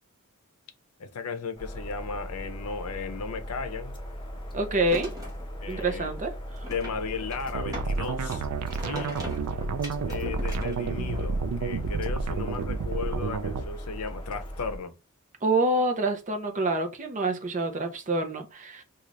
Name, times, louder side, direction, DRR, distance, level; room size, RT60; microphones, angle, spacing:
voice 1, 1.0-3.9 5.6-6.1 6.7-8.4 8.9-9.1 10.1-14.9, left 5 dB, 80° left, 0.6 m, -35 dB
sound 1, 1.6-14.8, equal, 20° left, 0.8 m, -39 dB
voice 2, 4.5-5.1 5.7-6.7 15.4-18.8, right 2 dB, 35° right, 0.6 m, -27 dB
sound 2, 4.9-5.4 6.6-8.0 8.3-11.2, left 1 dB, 15° right, 1.1 m, -41 dB
sound 3, 7.5-13.7, right 4 dB, 90° right, 0.4 m, -30 dB
3.8 x 2.4 x 3.1 m
head